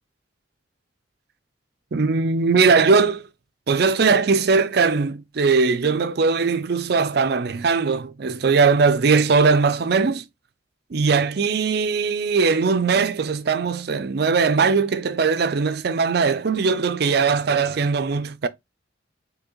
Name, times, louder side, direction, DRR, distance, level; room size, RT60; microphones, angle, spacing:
voice 1, 1.9-3.2 3.7-10.2 10.9-18.5, right 4 dB, 55° right, 0.4 m, -20 dB
4.6 x 2.8 x 3.0 m
head